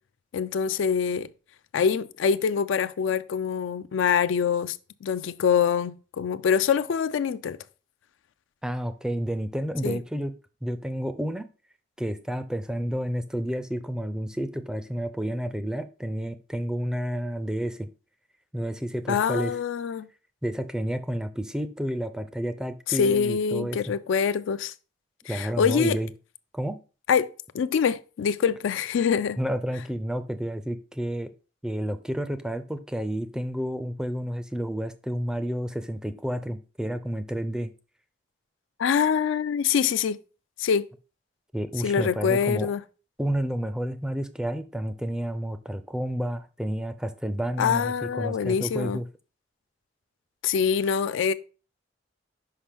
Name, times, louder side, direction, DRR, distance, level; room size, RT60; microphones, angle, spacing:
voice 1, 0.3-1.3 1.7-7.6 9.8-10.0 19.1-20.1 22.9-24.7 25.3-26.0 27.1-27.3 27.5-29.4 38.8-40.2 40.6-40.9 41.8-42.8 47.6-49.0 50.4-51.3, left 7 dB, 80° left, 0.3 m, -25 dB
voice 2, 8.6-10.3 10.6-11.5 12.0-17.9 18.5-19.6 20.4-23.9 25.3-26.1 26.5-26.8 29.4-31.3 31.6-37.7 41.5-42.7 43.2-49.0, equal, 5° right, 0.4 m, -30 dB
5.7 x 5.1 x 3.4 m
head